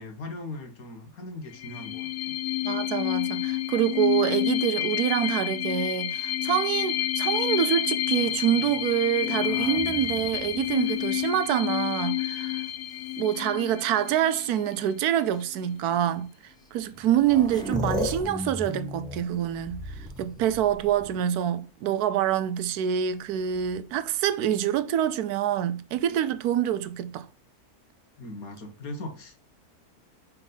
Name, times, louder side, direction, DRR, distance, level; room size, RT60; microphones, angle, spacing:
voice 1, 0.0-2.4 28.2-29.4, left 2 dB, 70° left, 1.9 m, -39 dB
sound 1, 1.5-14.9, left 13 dB, 85° left, 1.1 m, -29 dB
voice 2, 2.6-12.6 13.2-16.3 16.7-19.8 20.2-27.3, right 10 dB, 85° right, 1.1 m, -26 dB
sound 2, 8.1-12.0 12.7-13.4 14.5-14.6 15.3-15.5 16.6-16.7 16.9-21.4 23.3-24.0, left 1 dB, 5° left, 0.6 m, -37 dB
5.7 x 4.5 x 3.9 m
omnidirectional pair, 1.6 m